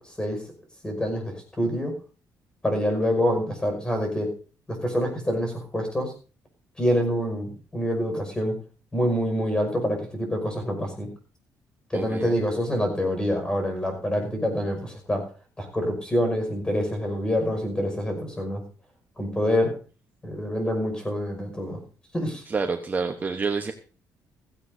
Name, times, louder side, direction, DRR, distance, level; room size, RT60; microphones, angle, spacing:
voice 1, 0.8-1.9 2.6-4.3 4.7-6.1 6.8-8.5 8.9-11.1 11.9-15.2 15.6-18.6 19.2-19.7 20.2-21.8 22.1-22.4, equal, 15° left, 4 dB, 5.7 m, -26 dB
voice 2, 11.9-12.3 22.5-23.7, right 4 dB, 25° right, 5 dB, 1.1 m, -28 dB
16.0 x 15.5 x 2.8 m, 0.36 s
cardioid pair, 130°, 7 cm